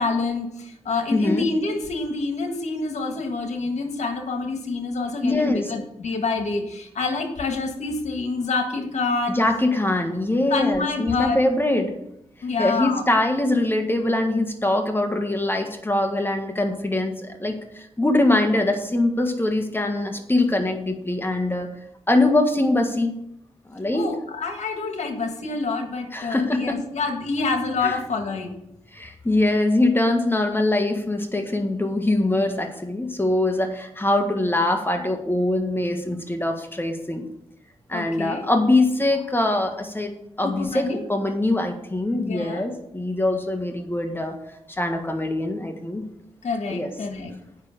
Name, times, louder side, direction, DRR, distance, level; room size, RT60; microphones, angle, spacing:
voice 1, 0.0-9.4 10.5-11.4 12.4-13.0 23.9-28.6 37.9-38.5 40.4-41.0 42.3-42.7 46.4-47.3, left 3 dB, 80° left, 4 dB, 1.7 m, -27 dB
voice 2, 1.1-1.5 5.2-5.7 9.3-11.9 12.6-21.7 22.1-23.1 23.7-24.1 26.1-26.8 27.8-28.0 28.9-37.2 37.9-40.1 40.4-44.4 44.8-46.0 46.7-46.9, left 2 dB, 20° left, 5 dB, 1.5 m, -23 dB
8.3 x 5.9 x 6.7 m, 0.79 s
cardioid pair, 55°, 11 cm